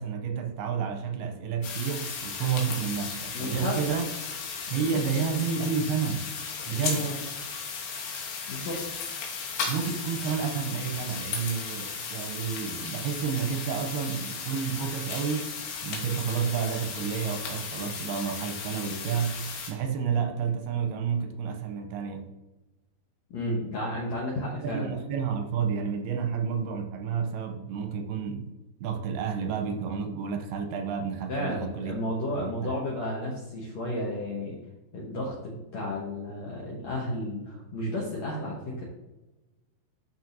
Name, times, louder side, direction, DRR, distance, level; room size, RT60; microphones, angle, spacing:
voice 1, 0.0-4.0 4.7-6.3 6.7-7.1 9.7-15.5 15.8-22.3 24.6-28.5 28.8-31.9 32.3-32.5, right 6 dB, 85° right, 2.6 m, -30 dB
sound 1, 1.6-19.7, left 5 dB, 80° left, 3.3 m, -36 dB
voice 2, 3.3-4.0 4.7-5.0 6.7-7.1 8.5-8.8 23.3-24.9 31.3-34.6 34.9-38.9, left 1 dB, 65° left, 1.8 m, -33 dB
12.0 x 4.7 x 2.7 m
omnidirectional pair, 4.7 m